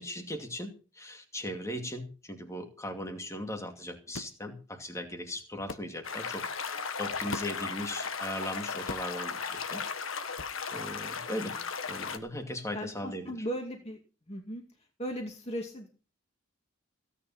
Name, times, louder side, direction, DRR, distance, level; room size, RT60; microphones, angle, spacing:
voice 1, 0.0-9.9 10.7-11.6 11.9-13.3, left 1 dB, 15° left, 5 dB, 2.5 m, -38 dB
sound 1, 4.1-4.4 5.7-5.9 7.3-7.7 8.9-9.2 10.4-10.6, left 3 dB, 70° left, 1.0 m, -40 dB
sound 2, 6.0-12.2, left 5 dB, 85° left, 1.6 m, -36 dB
voice 2, 12.7-14.0 14.3-14.6 15.0-16.0, equal, 30° left, 2 dB, 2.3 m, -37 dB
16.5 x 10.0 x 5.7 m, 0.36 s
head